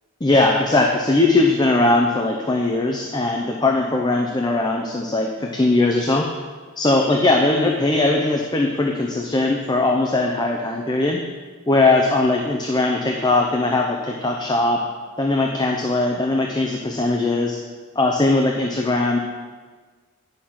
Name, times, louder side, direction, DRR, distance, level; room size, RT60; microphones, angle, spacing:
voice 1, 0.2-6.3 6.8-11.2 11.7-14.8 15.2-17.6 18.0-19.2, left 2 dB, 20° left, 1 dB, 0.6 m, -20 dB
9.7 x 6.5 x 5.8 m, 1.4 s
head